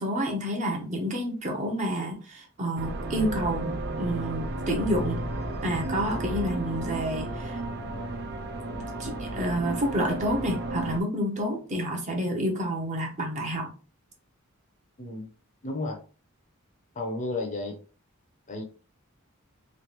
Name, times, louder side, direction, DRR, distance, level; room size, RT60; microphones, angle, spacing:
voice 1, 0.0-5.2 5.6-7.6 9.0-13.7, equal, 35° right, 1 dB, 0.8 m, -29 dB
sound 1, 2.8-11.0, right 2 dB, 50° right, 0.4 m, -33 dB
voice 2, 15.0-15.3 15.6-16.0 16.9-17.8 18.5-18.6, left 2 dB, 35° left, 3 dB, 0.6 m, -32 dB
3.2 x 2.4 x 2.9 m, 0.37 s
head